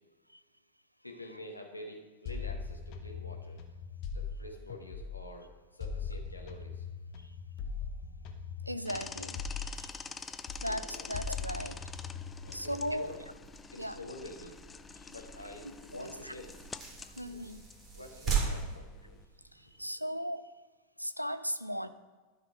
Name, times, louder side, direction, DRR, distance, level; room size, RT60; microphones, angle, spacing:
voice 1, 1.0-3.6 4.1-6.9 11.0-11.1 12.4-13.2 13.7-14.7 15.1-16.5 17.2-17.5 17.9-19.2, left 1 dB, 85° left, 1 dB, 1.4 m, -47 dB
sound 1, 2.3-5.4 5.8-10.2 10.5-12.9, left 5 dB, 40° left, 1.0 m, -41 dB
voice 2, 8.6-10.0 10.6-11.8 12.5-13.3 13.8-14.0 15.9-16.3 17.2-17.6 19.5-20.5 21.0-21.9, equal, 90° right, 12 dB, 0.4 m, -37 dB
sound 2, 8.9-19.3, left 5 dB, 15° left, 0.4 m, -47 dB
sound 3, 9.7-19.8, right 6 dB, 25° right, 2.5 m, -41 dB
12.5 x 4.5 x 4.9 m, 1.4 s
figure-of-eight pair, 90°, 0 cm